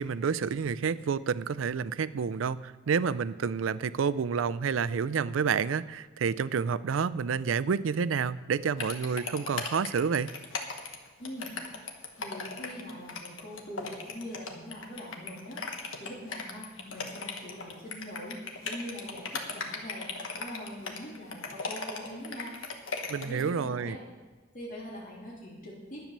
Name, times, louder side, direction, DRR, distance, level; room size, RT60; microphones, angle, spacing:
voice 1, 0.0-10.3 23.1-24.0, right 6 dB, 80° right, 15 dB, 0.4 m, -29 dB
sound 1, 8.8-23.4, left 4 dB, 85° left, 1.4 m, -37 dB
voice 2, 11.2-11.6 12.2-15.6 16.0-22.5 23.2-24.0 24.5-26.0, equal, 45° left, -6 dB, 3.2 m, -42 dB
10.5 x 8.9 x 6.7 m, 1.3 s
head